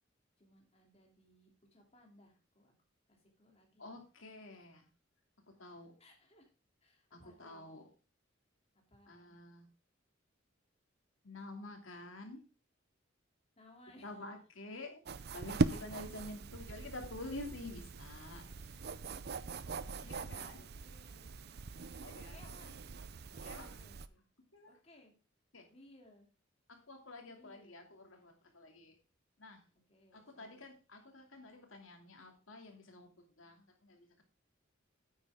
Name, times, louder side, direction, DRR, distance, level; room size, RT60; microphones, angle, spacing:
voice 1, 0.4-2.7 3.1-4.0 4.5-4.7 6.0-6.5 6.8-7.7 8.7-9.3 13.6-14.1 18.5-18.9 19.3-19.4 19.9-21.4 21.7-23.0 23.3-24.2 24.7-25.2 25.7-26.3 27.2-27.9 29.9-30.7, left 1 dB, 30° left, 2.8 m, -63 dB
voice 2, 3.8-4.9 5.5-5.9 7.1-7.8 9.1-9.7 11.2-12.4 14.0-15.0 15.3-18.4 20.0-20.6 22.0-22.4 23.4-23.7 24.5-24.7 25.5-25.7 26.7-29.0 29.4-29.6 30.1-34.2, left 2 dB, 85° left, 2.6 m, -49 dB
sound 1, 15.1-24.1, right 3 dB, 55° right, 0.5 m, -40 dB
9.5 x 8.9 x 3.6 m
head